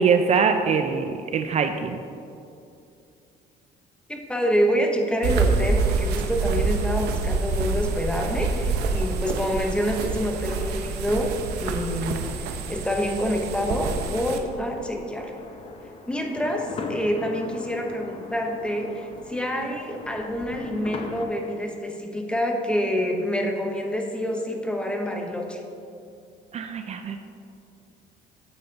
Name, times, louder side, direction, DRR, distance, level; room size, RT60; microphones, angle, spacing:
voice 1, 0.0-2.0 26.5-27.2, right 5 dB, 40° right, 7 dB, 0.4 m, -23 dB
voice 2, 4.1-11.3 11.6-12.2 12.5-15.3 16.1-25.6, equal, 5° left, 2 dB, 1.0 m, -27 dB
sound 1, 5.2-14.4, right 4 dB, 80° right, 0.8 m, -26 dB
sound 2, 13.6-21.3, left 3 dB, 35° left, 0.8 m, -39 dB
8.6 x 8.6 x 2.9 m, 2.6 s
cardioid pair, 110°, 17 cm